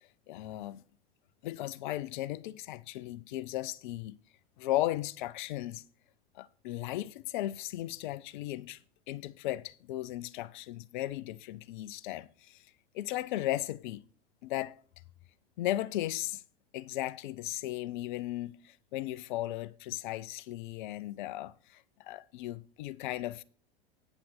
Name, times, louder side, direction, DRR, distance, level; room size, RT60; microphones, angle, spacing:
voice 1, 0.3-0.8 1.4-4.2 4.6-5.8 6.4-8.8 9.1-12.6 12.9-14.0 14.4-14.8 15.6-16.4 16.7-23.4, left 15 dB, 55° left, 0.6 m, -36 dB
9.1 x 5.8 x 6.8 m
figure-of-eight pair, 90°, 30 cm